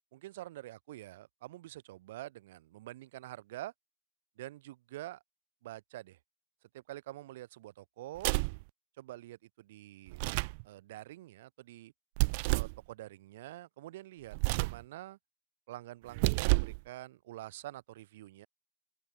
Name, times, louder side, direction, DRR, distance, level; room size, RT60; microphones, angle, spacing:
voice 1, 0.1-3.7 4.4-5.2 5.6-6.2 6.7-8.3 9.0-10.2 10.6-11.9 12.5-15.2 15.7-18.5, right 15 dB, 55° right, 4.2 m, -46 dB
sound 1, 8.2-8.6 10.1-10.6 12.2-12.8 14.3-14.8 16.1-16.8, right 30 dB, 40° right, 1.5 m, -29 dB
supercardioid pair, 175°, 0 cm